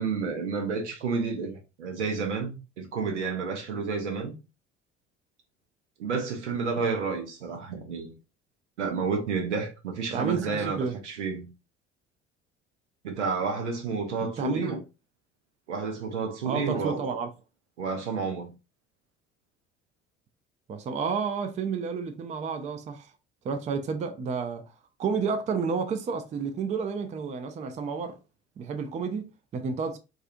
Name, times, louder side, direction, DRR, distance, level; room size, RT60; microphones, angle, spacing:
voice 1, 0.0-4.3 6.0-8.1 8.8-11.5 13.0-14.8 15.7-17.2 17.8-18.5, right 5 dB, 80° right, 0.7 m, -30 dB
voice 2, 10.1-11.0 14.2-14.7 16.4-17.3 20.7-23.1 23.4-24.6 25.0-28.2 28.6-30.0, right 5 dB, 20° right, 0.4 m, -31 dB
2.4 x 2.4 x 2.5 m
figure-of-eight pair, 55°, 35 cm